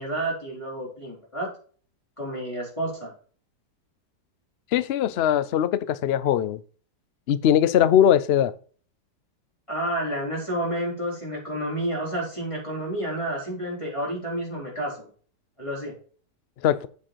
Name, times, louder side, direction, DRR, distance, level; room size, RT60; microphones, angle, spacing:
voice 1, 0.0-1.5 2.2-3.1 9.7-15.1 15.6-15.9, right 1 dB, 15° left, -4 dB, 4.0 m, -30 dB
voice 2, 4.7-6.6 7.3-8.5 16.6-16.9, left 10 dB, 90° left, 16 dB, 0.5 m, -20 dB
7.6 x 6.8 x 4.5 m, 0.43 s
omnidirectional pair, 1.8 m